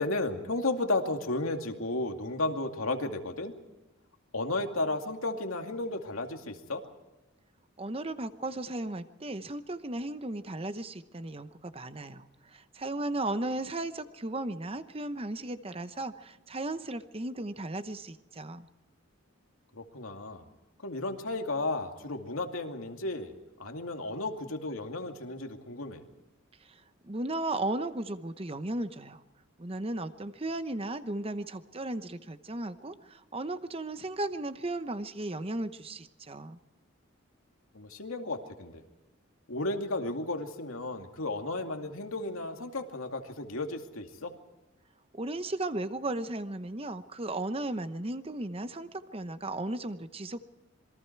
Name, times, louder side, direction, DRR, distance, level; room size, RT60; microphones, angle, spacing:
voice 1, 0.0-3.5 4.3-6.8 19.7-20.4 20.8-23.3 23.6-26.0 37.7-38.8 39.5-44.3, left 2 dB, 85° left, 4 dB, 2.5 m, -33 dB
voice 2, 7.8-18.7 26.6-29.2 29.6-36.6 45.1-50.4, right 2 dB, 30° right, 11 dB, 0.9 m, -35 dB
27.0 x 22.5 x 4.6 m, 1.1 s
head